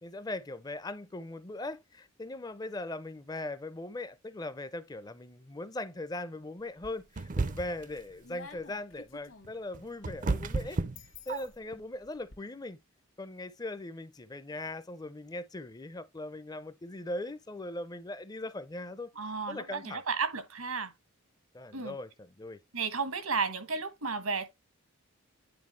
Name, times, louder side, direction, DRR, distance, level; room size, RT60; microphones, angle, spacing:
voice 1, 0.0-10.8 11.3-12.8 13.2-19.1 19.5-20.0 21.5-22.6, left 2 dB, 20° left, 0.5 m, -40 dB
sound 1, 6.6-7.3 7.7-12.4, left 4 dB, 65° left, 1.5 m, -53 dB
sound 2, 7.2-7.9 9.4-11.7, right 3 dB, 35° right, 0.5 m, -32 dB
voice 2, 19.1-20.9 21.7-22.0 22.7-24.5, right 4 dB, 85° right, 1.4 m, -33 dB
9.7 x 4.3 x 3.2 m
head